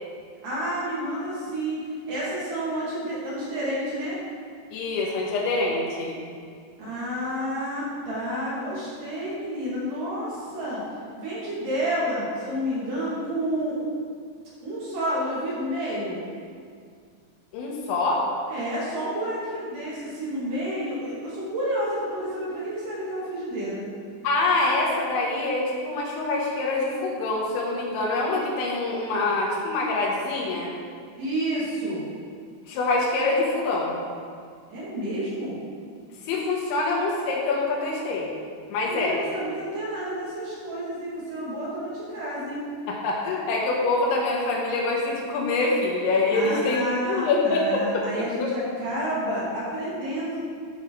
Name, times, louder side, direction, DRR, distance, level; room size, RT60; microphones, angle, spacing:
voice 1, 0.4-1.8 2.1-4.2 6.8-10.8 11.1-13.8 14.6-16.2 18.5-23.8 31.2-32.0 34.7-35.6 38.9-42.6 46.3-50.4, equal, 50° right, -8 dB, 3.7 m, -30 dB
voice 2, 4.7-6.2 17.5-18.2 24.2-30.7 32.7-34.0 36.3-38.3 38.7-39.2 42.9-48.0 48.4-48.5, left 3 dB, 85° left, -3 dB, 3.5 m, -25 dB
10.5 x 5.4 x 4.8 m, 2.1 s
omnidirectional pair, 5.2 m